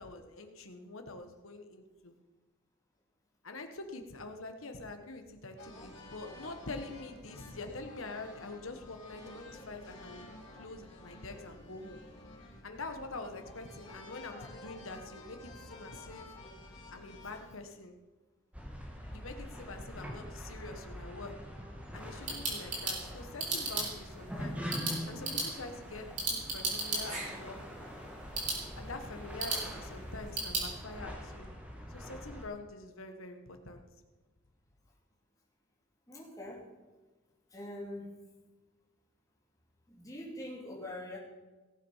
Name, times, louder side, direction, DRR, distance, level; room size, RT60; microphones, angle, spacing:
voice 1, 0.0-2.1 3.4-10.2 10.6-12.0 12.6-16.3 16.9-17.9 19.1-21.3 21.9-24.6 25.1-27.6 28.7-31.5 31.9-33.8, left 2 dB, 85° left, 6 dB, 1.6 m, -45 dB
sound 1, 5.6-17.5, left 2 dB, 60° left, 3.5 m, -51 dB
sound 2, 18.5-32.4, equal, 5° right, 1.8 m, -44 dB
sound 3, 21.9-30.7, right 3 dB, 40° right, 3.9 m, -37 dB
voice 2, 36.1-36.6 37.5-38.1 39.9-41.2, left 1 dB, 15° left, -4 dB, 2.8 m, -43 dB
18.0 x 7.4 x 5.7 m, 1.2 s
head